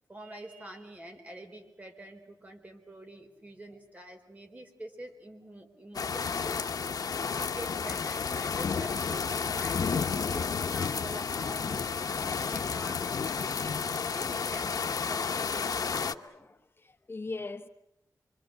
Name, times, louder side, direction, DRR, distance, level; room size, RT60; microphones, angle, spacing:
voice 1, 0.1-6.7 7.1-16.5, right 1 dB, 25° right, 4.3 m, -46 dB
sound 1, 5.9-16.1, left 6 dB, 75° left, 1.0 m, -31 dB
voice 2, 15.8-17.7, left 3 dB, 35° left, 1.1 m, -41 dB
27.0 x 24.5 x 7.9 m
wide cardioid pair, 130°, 6 cm